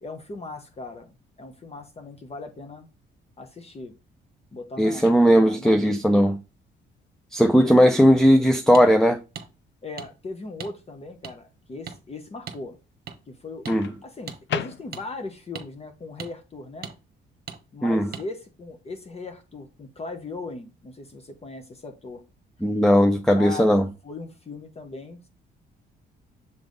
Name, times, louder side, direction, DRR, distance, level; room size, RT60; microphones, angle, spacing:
voice 1, 0.0-2.9 3.4-3.9 4.5-6.3 7.5-7.7 9.8-12.8 13.3-13.6 14.0-16.9 17.7-22.2 23.3-25.3, left 3 dB, 30° left, 1.0 m, -38 dB
voice 2, 4.8-6.4 7.3-9.2 13.7-13.9 17.8-18.1 22.6-23.8, equal, ahead, 0.5 m, -18 dB
Microwave oven, 5.0-5.7 7.6-7.9 13.7-15.3, left 9 dB, 65° left, 0.6 m, -36 dB
sound 1, 8.7-8.9 9.4-9.5 10.0-10.1 10.6-10.7 11.2-11.3 11.9-12.0 12.5-12.6 13.1-13.2 13.6-13.8 14.3-14.4 14.9-15.0 15.5-15.7 16.2-16.3 16.8-17.0 17.5-17.6 18.1-18.3, right 7 dB, 50° right, 1.1 m, -37 dB
7.0 x 3.4 x 4.0 m
cardioid pair, 90°, 20 cm